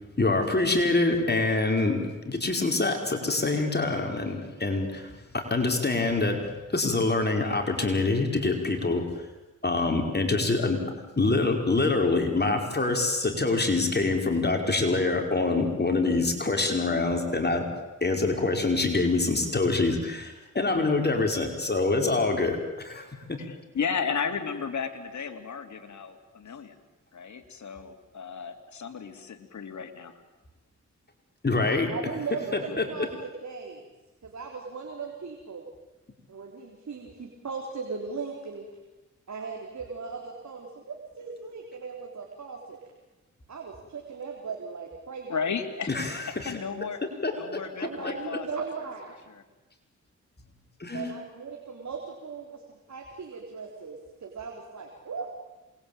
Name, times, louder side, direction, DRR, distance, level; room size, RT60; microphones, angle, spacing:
voice 1, 0.2-6.4 6.7-9.0 9.6-10.8 11.2-17.7 18.0-23.4 31.4-31.9 32.8-32.9 45.9-46.5 47.2-47.6 50.8-51.1, left 3 dB, 35° left, 4 dB, 5.3 m, -25 dB
voice 2, 23.4-26.8 27.1-30.1 45.3-47.0 47.4-48.5 49.3-49.4, left 6 dB, 65° left, 6 dB, 3.0 m, -34 dB
voice 3, 31.6-33.8 34.2-35.6 36.3-38.7 39.3-42.8 43.5-45.3 46.5-46.6 47.8-49.2 50.9-55.3, right 5 dB, 60° right, 1 dB, 3.9 m, -38 dB
27.5 x 21.5 x 9.0 m, 1.1 s
cardioid pair, 55°, 31 cm